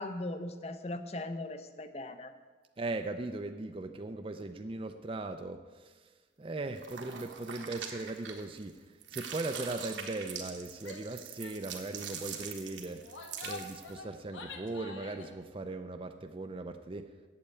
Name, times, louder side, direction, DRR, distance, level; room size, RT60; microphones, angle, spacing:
voice 1, 0.0-2.3, left 2 dB, 35° left, 10 dB, 0.6 m, -39 dB
voice 2, 2.8-6.1 6.4-13.0 13.4-17.1, right 2 dB, 30° right, 7 dB, 0.4 m, -39 dB
sound 1, 6.8-8.7 9.0-13.9, right 7 dB, 70° right, 1.3 m, -43 dB
Female speech woman speaking / Yell, 10.8-11.1 11.4-11.6 11.9-12.2 12.9-15.3, left 3 dB, 85° left, 1.2 m, -47 dB
8.5 x 7.9 x 8.3 m, 1.4 s
head